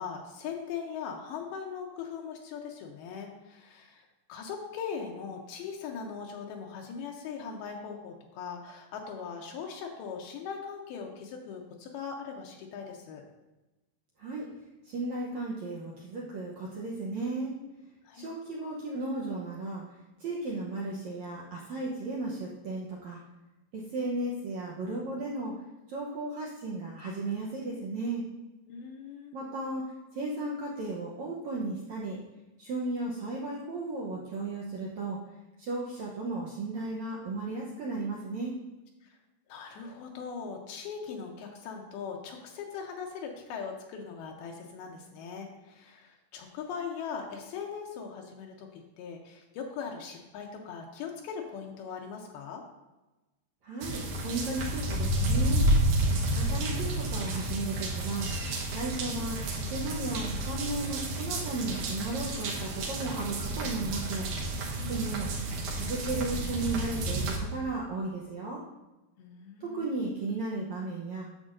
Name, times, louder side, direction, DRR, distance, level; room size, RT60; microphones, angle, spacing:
voice 1, 0.0-13.2 18.0-18.3 28.7-29.3 39.0-39.2 39.5-52.6 64.8-65.2 69.2-70.0, left 6 dB, 85° left, 1 dB, 2.6 m, -40 dB
voice 2, 14.8-17.5 18.1-19.8 20.2-23.2 23.7-25.6 25.9-28.2 29.3-29.8 30.1-32.2 32.6-35.2 35.6-38.5 53.6-55.7 56.3-64.3 64.9-65.3 65.7-68.6 69.6-71.3, right 2 dB, 85° right, -3 dB, 1.5 m, -35 dB
sound 1, 53.8-67.4, right 1 dB, 65° right, 2.4 m, -30 dB
10.0 x 7.1 x 2.6 m, 1.1 s
omnidirectional pair, 4.4 m